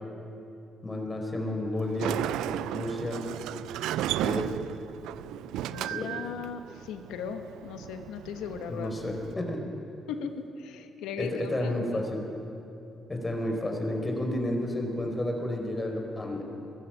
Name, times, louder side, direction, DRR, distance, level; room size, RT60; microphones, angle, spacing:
voice 1, 0.8-2.2 2.7-3.2 4.2-4.5 5.9-6.1 8.7-9.6 11.2-12.2 13.1-16.4, left 1 dB, 25° left, 2 dB, 4.9 m, -31 dB
Sliding door, 1.8-9.3, right 13 dB, 85° right, 0.4 m, -35 dB
voice 2, 5.7-9.1 10.1-12.0, left 6 dB, 85° left, 7 dB, 1.3 m, -38 dB
21.5 x 13.0 x 9.2 m, 2.8 s
supercardioid pair, 60°, 0 cm